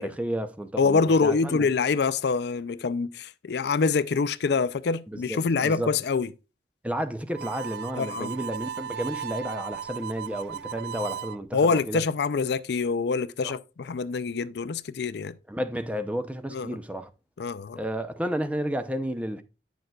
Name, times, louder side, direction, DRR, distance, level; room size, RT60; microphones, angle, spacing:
voice 1, 0.0-1.7 5.1-5.9 6.8-12.0 13.4-13.5 15.5-17.1 17.8-19.4, equal, 10° right, 0.6 m, -32 dB
voice 2, 0.8-6.3 8.0-8.3 11.5-15.3 16.5-16.8 17.4-17.8, left 4 dB, 65° left, 0.4 m, -25 dB
Harmonica, 7.3-11.4, right 8 dB, 60° right, 0.3 m, -36 dB
9.2 x 6.5 x 2.3 m
head